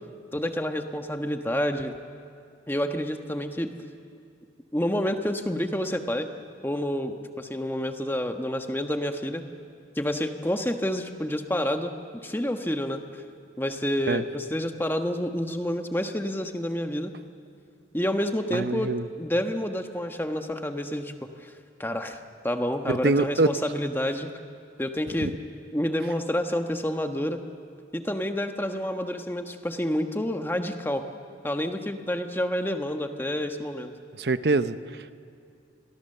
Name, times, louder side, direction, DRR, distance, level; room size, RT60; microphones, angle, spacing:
voice 1, 0.3-2.0 2.7-3.7 4.7-6.3 6.6-9.4 10.0-13.2 13.6-17.1 17.9-21.5 21.8-22.2 22.4-24.3 24.8-25.3 25.7-27.4 27.9-31.0 31.4-33.9, equal, 10° left, 6 dB, 1.2 m, -29 dB
voice 2, 18.5-19.0 22.9-23.5 25.2-25.3 34.2-34.8, right 2 dB, 60° right, 13 dB, 0.8 m, -24 dB
30.0 x 22.5 x 6.7 m, 2.4 s
head